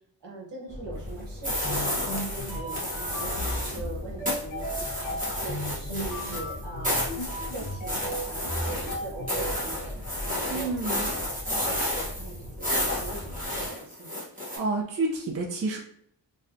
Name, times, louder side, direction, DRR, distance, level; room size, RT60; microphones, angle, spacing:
voice 1, 0.2-4.6 5.0-7.1 7.5-14.2, right 3 dB, 70° right, -2 dB, 1.1 m, -41 dB
sound 1, 0.7-13.7, left 1 dB, 15° left, 0.5 m, -40 dB
sound 2, 1.4-3.9 4.3-14.6, left 1 dB, 20° right, 0.9 m, -31 dB
sound 3, 1.6-9.5, equal, 45° left, 0.8 m, -36 dB
voice 2, 10.5-11.1 14.6-15.8, right 3 dB, 35° right, 0 dB, 0.4 m, -29 dB
3.2 x 2.6 x 2.5 m, 0.69 s
wide cardioid pair, 145°, 44 cm